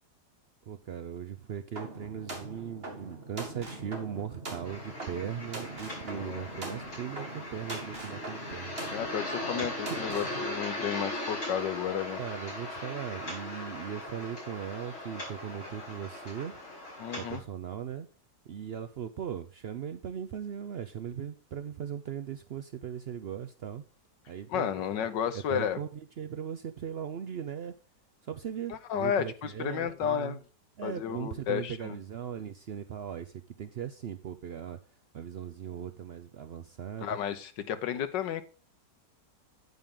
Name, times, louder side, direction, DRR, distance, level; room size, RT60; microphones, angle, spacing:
voice 1, 0.7-8.7 11.0-11.1 11.9-16.6 17.2-18.1 18.5-23.8 24.3-24.7 25.3-27.7 28.2-30.4 30.8-34.8 35.1-37.2, right 8 dB, 75° right, 9 dB, 0.5 m, -39 dB
sound 1, 1.8-10.4, right 2 dB, 35° right, 2.1 m, -42 dB
sound 2, 4.6-17.4, left 1 dB, 40° left, 4.9 m, -39 dB
voice 2, 6.1-6.8 8.9-12.2 17.0-17.4 24.5-25.8 28.7-30.4 30.8-32.0 37.0-38.4, left 9 dB, 90° left, 11 dB, 1.6 m, -32 dB
9.2 x 9.1 x 3.7 m, 0.35 s
omnidirectional pair, 1.9 m